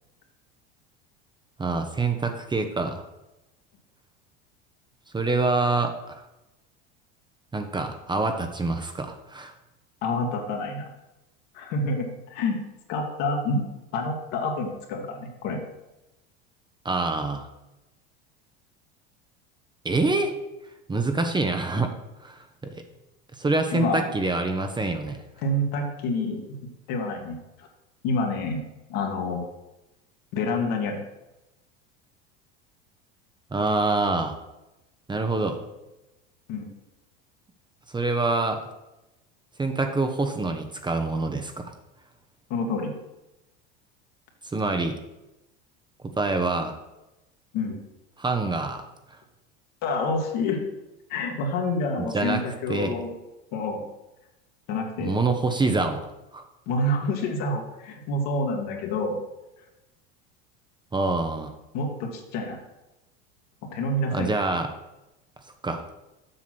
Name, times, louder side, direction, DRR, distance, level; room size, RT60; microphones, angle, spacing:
voice 1, 1.6-3.0 5.1-6.2 7.5-9.5 16.8-17.5 19.8-20.3 20.9-21.9 22.2-22.7 23.4-25.2 33.5-34.4 35.1-35.6 37.9-38.6 39.6-41.7 44.5-45.0 46.0-46.7 48.2-48.8 52.0-52.4 52.7-52.9 55.0-56.0 56.3-56.4 60.9-61.5 64.1-64.7 65.6-65.8, right 3 dB, 15° right, 6 dB, 0.9 m, -26 dB
voice 2, 10.0-10.9 11.5-12.6 12.9-13.6 13.9-15.6 23.7-24.0 25.4-26.6 26.9-27.7 28.0-28.6 28.9-29.4 30.3-31.0 36.5-36.7 42.5-42.9 47.5-47.8 49.8-50.6 51.1-53.1 53.5-53.9 54.7-55.1 56.7-59.2 61.7-62.6 63.6-64.3, left 2 dB, 65° left, 2 dB, 2.1 m, -28 dB
7.7 x 6.0 x 6.0 m, 0.98 s
supercardioid pair, 100°, 30 cm